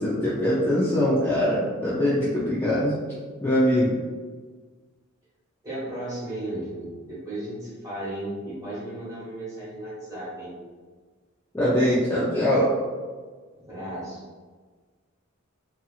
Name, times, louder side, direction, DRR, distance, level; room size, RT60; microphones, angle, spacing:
voice 1, 0.0-3.9 11.5-12.7, equal, 10° left, -8 dB, 0.4 m, -23 dB
voice 2, 5.6-10.5 13.6-14.2, right 1 dB, 15° right, -9 dB, 1.2 m, -35 dB
2.8 x 2.4 x 2.3 m, 1.4 s
head